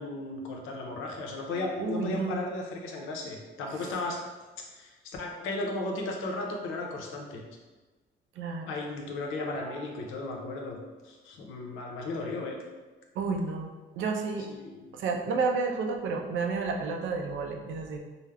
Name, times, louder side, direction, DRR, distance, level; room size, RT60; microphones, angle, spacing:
voice 1, 0.0-4.2 4.6-7.4 8.7-10.8 11.0-12.6 14.5-14.9, left 2 dB, 90° left, 1 dB, 0.5 m, -35 dB
voice 2, 1.8-2.4 8.4-8.7 9.7-9.8 13.2-14.5 14.9-18.0, right 4 dB, 75° right, 2 dB, 0.4 m, -31 dB
3.2 x 2.0 x 2.2 m, 1.3 s
cardioid pair, 90°, 20 cm